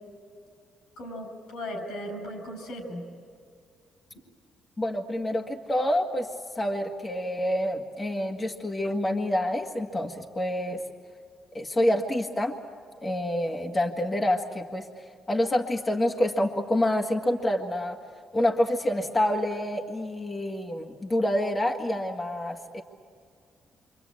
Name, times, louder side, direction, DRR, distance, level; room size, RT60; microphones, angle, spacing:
voice 1, 1.0-3.0, equal, 90° left, 5 dB, 6.3 m, -37 dB
voice 2, 4.8-6.3 6.6-10.8 11.5-12.6 13.0-18.0 18.3-22.8, left 1 dB, 25° left, 2 dB, 1.8 m, -27 dB
27.5 x 25.0 x 8.6 m, 2.3 s
cardioid pair, 90°, 0 cm